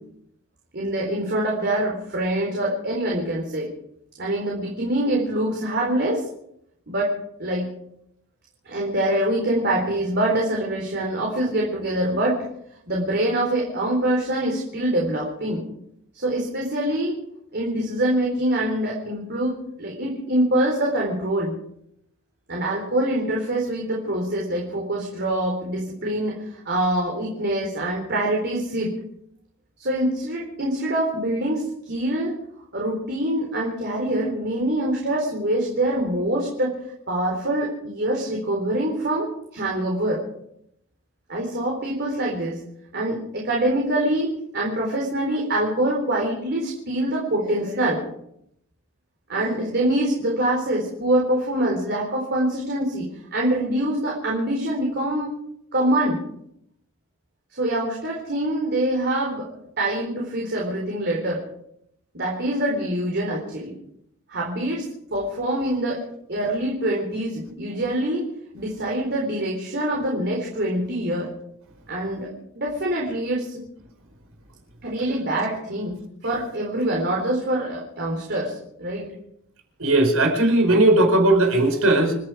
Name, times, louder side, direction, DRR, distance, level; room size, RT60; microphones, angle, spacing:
voice 1, 0.7-3.7 4.2-6.2 6.9-7.1 7.4-7.7 8.7-12.4 12.9-15.6 16.1-17.2 17.5-21.5 22.5-28.9 29.8-32.4 32.7-36.8 37.1-40.2 41.3-42.6 42.9-48.0 49.3-55.3 55.7-56.2 57.5-59.5 59.8-61.4 62.1-63.7 64.3-64.8 65.1-66.0 66.3-68.3 68.5-71.3 71.9-73.6 74.8-76.0 76.2-79.1, right 1 dB, 55° right, -2 dB, 4.1 m, -25 dB
voice 2, 79.8-82.1, right 2 dB, 90° right, 3 dB, 4.8 m, -17 dB
29.5 x 10.0 x 4.8 m, 0.75 s
head